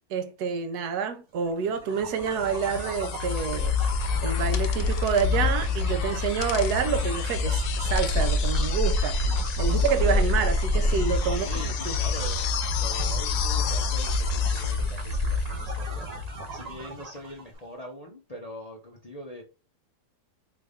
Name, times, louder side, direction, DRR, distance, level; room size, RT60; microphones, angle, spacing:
voice 1, 0.1-3.8 4.2-12.0, right 6 dB, 70° right, 1.2 m, -28 dB
sound 1, 1.7-17.4, left 2 dB, 50° right, 0.4 m, -27 dB
sound 2, 2.1-16.1 17.5-17.6, left 10 dB, 75° left, 1.1 m, -36 dB
sound 3, 4.5-5.3 6.4-6.8 7.9-8.5, left 9 dB, 90° left, 1.2 m, -39 dB
voice 2, 9.9-10.7 11.2-16.1 16.5-19.4, equal, 55° left, 0.4 m, -42 dB
4.5 x 2.5 x 3.4 m
omnidirectional pair, 1.8 m